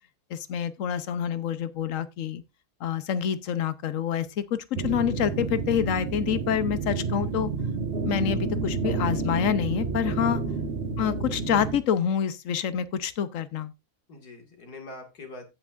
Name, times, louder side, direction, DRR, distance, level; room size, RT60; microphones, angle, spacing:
voice 1, 0.3-2.4 2.8-7.5 8.0-10.4 11.0-13.7, left 9 dB, 60° left, 1.1 m, -27 dB
sound 1, 4.7-11.8, right 4 dB, 40° right, 1.5 m, -30 dB
voice 2, 10.3-10.7 14.1-15.5, left 3 dB, 85° left, 2.7 m, -43 dB
16.0 x 5.9 x 2.5 m
omnidirectional pair, 1.6 m